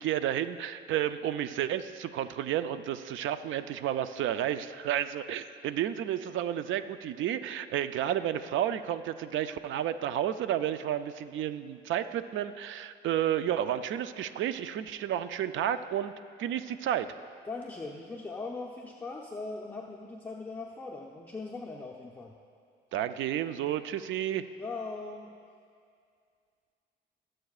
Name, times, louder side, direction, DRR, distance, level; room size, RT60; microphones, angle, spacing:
voice 1, 0.0-16.1 16.4-17.1 22.9-24.5, right 10 dB, 75° right, 12 dB, 0.5 m, -31 dB
voice 2, 17.5-22.4 24.6-25.3, left 3 dB, 10° left, -3 dB, 0.7 m, -40 dB
22.0 x 7.7 x 2.4 m, 2.3 s
cardioid pair, 90°, 20 cm